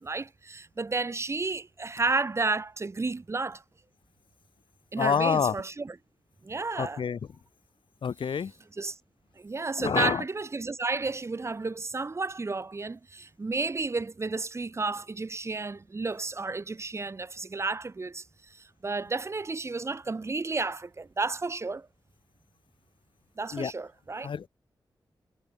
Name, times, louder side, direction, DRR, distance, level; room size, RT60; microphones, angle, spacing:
voice 1, 0.0-3.6 4.9-6.0 6.4-7.0 8.7-8.9 9.4-18.2 18.5-21.9 23.4-24.3, right 3 dB, 35° right, 1.6 m, -32 dB
voice 2, 5.0-5.5 6.8-7.2 8.0-8.5 9.8-10.2 23.5-23.7 24.2-24.5, left 7 dB, 80° left, 2.1 m, -27 dB
wide cardioid pair, 110°, 8 cm